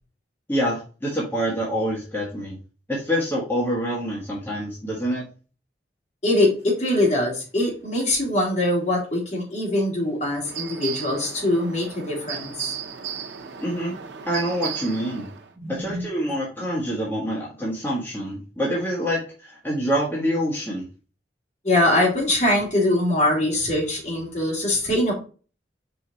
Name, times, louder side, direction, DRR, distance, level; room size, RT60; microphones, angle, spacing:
voice 1, 0.5-2.6 2.9-5.3 13.6-14.0 14.2-15.3 15.7-20.9, equal, 10° left, -6 dB, 1.5 m, -26 dB
voice 2, 6.2-12.7 15.6-16.0 21.6-25.1, left 1 dB, 40° left, -3 dB, 2.9 m, -22 dB
sound 1, 10.4-15.5, right 7 dB, 80° right, 0.8 m, -35 dB
5.1 x 4.8 x 4.0 m, 0.36 s
head